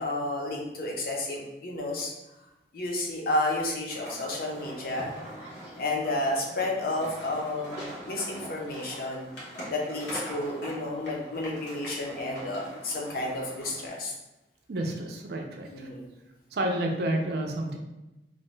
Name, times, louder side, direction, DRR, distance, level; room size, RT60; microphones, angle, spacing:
voice 1, 0.0-2.1 2.7-5.1 5.8-9.3 9.7-14.1 15.7-16.0, left 2 dB, 55° left, -1 dB, 0.6 m, -31 dB
sound 1, 3.9-13.9, equal, 85° left, 1.0 m, -42 dB
voice 2, 14.7-15.9 16.5-17.8, right 1 dB, 60° right, 2 dB, 0.4 m, -30 dB
2.6 x 2.1 x 3.1 m, 0.99 s
head